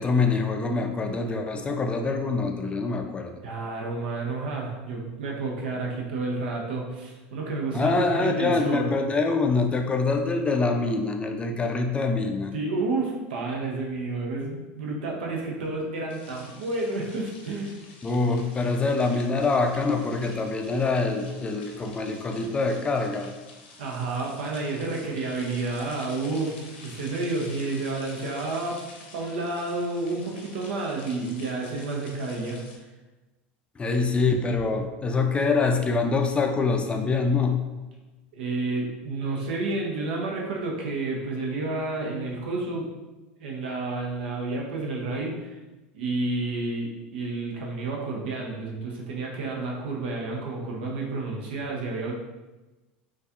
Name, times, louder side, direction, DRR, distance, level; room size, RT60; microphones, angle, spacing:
voice 1, 0.0-3.4 7.7-12.5 18.0-23.3 33.8-37.6, left 3 dB, 20° left, 4 dB, 0.3 m, -25 dB
voice 2, 3.4-8.9 12.5-17.8 23.8-28.8 29.1-32.6 38.3-42.9 43.4-45.6 45.9-52.1, right 3 dB, 90° right, -1 dB, 0.7 m, -30 dB
sound 1, 16.1-32.8, left 3 dB, 90° left, 0.6 m, -48 dB
4.0 x 2.4 x 2.4 m, 1.1 s
supercardioid pair, 100°, 6 cm